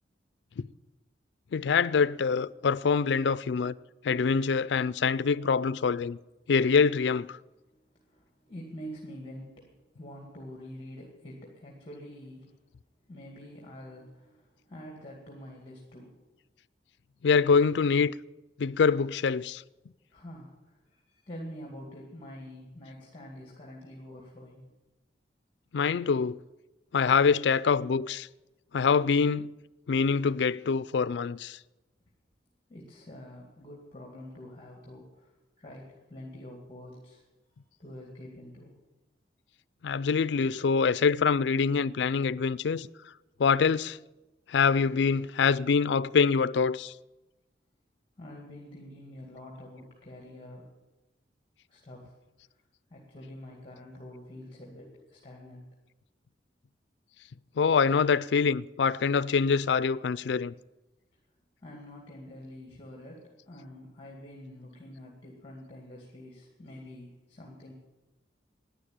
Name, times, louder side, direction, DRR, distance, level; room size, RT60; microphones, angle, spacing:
voice 1, 1.5-3.8 4.0-6.2 6.5-7.4 17.2-18.1 18.6-19.6 25.7-26.4 26.9-28.3 28.7-29.5 29.9-31.6 39.8-42.9 43.4-44.0 44.5-46.9 57.6-60.5, left 5 dB, 75° left, 0.4 m, -25 dB
voice 2, 7.6-12.5 13.1-16.2 20.1-24.7 32.7-35.3 35.6-37.2 37.8-38.8 48.2-50.7 51.7-52.1 52.9-55.6 61.6-67.7, left 1 dB, 30° left, 2.2 m, -46 dB
11.5 x 9.8 x 8.8 m
head